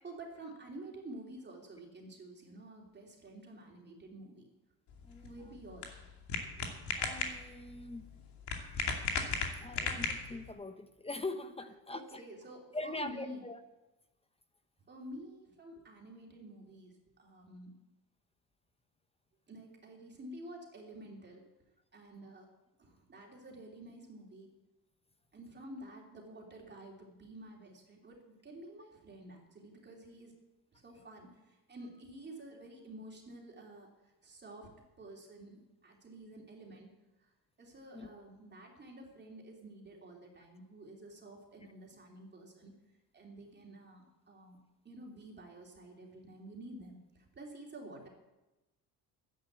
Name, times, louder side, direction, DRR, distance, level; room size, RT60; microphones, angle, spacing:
voice 1, 0.0-4.5 5.2-5.9 6.6-6.7 11.9-13.4 14.9-17.7 19.5-21.5 21.9-22.5 22.8-24.5 25.3-30.3 30.7-34.7 35.0-36.9 37.2-44.6 44.8-48.1, right 1 dB, 25° right, 0 dB, 3.1 m, -50 dB
sound 1, 4.9-10.5, left 5 dB, 70° left, 2.5 m, -37 dB
voice 2, 7.0-8.1 8.5-9.0 9.5-12.2 12.7-13.6 37.9-38.1, left 2 dB, 15° left, 10 dB, 0.8 m, -42 dB
11.5 x 10.5 x 8.1 m, 1.1 s
cardioid pair, 130°, 42 cm